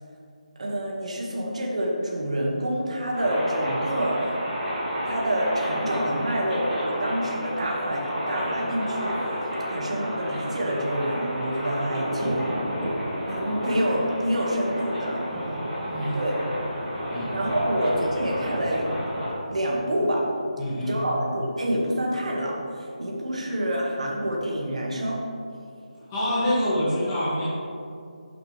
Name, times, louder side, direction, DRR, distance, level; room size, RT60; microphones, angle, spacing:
voice 1, 0.6-4.3 5.1-9.2 9.7-12.5 13.3-15.6 16.1-16.4 17.3-18.9 19.5-20.3 20.8-25.2, equal, 55° right, -2 dB, 1.9 m, -27 dB
sound 1, 3.1-19.3, equal, 10° right, 2.0 m, -30 dB
voice 2, 15.8-16.2 17.1-17.3 20.6-21.0 26.1-27.5, equal, 15° left, -10 dB, 2.2 m, -26 dB
11.5 x 7.5 x 3.4 m, 2.5 s
figure-of-eight pair, 175°, 4 cm